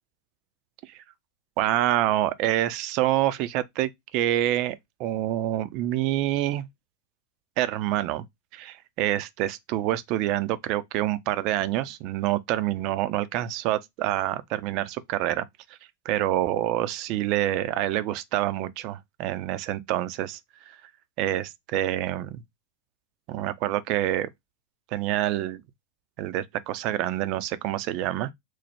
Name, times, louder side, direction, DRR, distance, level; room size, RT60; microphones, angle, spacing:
voice 1, 1.6-6.7 7.6-8.2 8.5-15.5 16.1-20.4 21.2-22.4 23.3-24.3 24.9-25.6 26.2-28.3, right 13 dB, 40° right, 0.3 m, -27 dB
3.1 x 2.1 x 4.1 m
figure-of-eight pair, 90°, 0 cm